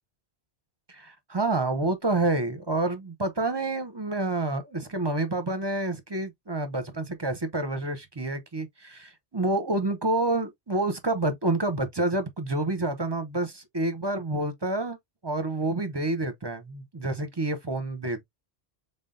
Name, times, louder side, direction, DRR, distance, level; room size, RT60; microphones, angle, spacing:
voice 1, 0.9-15.0 15.2-18.2, right 2 dB, 30° right, 0.5 m, -28 dB
3.8 x 3.6 x 2.5 m
omnidirectional pair, 1.1 m